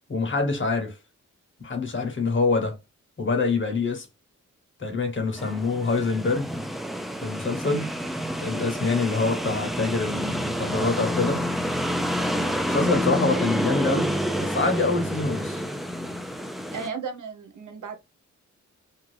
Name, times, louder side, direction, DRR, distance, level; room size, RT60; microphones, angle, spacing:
voice 1, 0.1-1.0 1.6-2.8 3.2-4.1 4.8-6.5 7.2-7.9 8.4-11.4 12.7-15.6, left 3 dB, 40° left, 1.1 m, -25 dB
sound 1, 5.4-16.9, equal, ahead, 0.4 m, -28 dB
voice 2, 16.7-18.0, right 5 dB, 80° right, 0.8 m, -35 dB
2.7 x 2.3 x 3.3 m
wide cardioid pair, 90°, 30 cm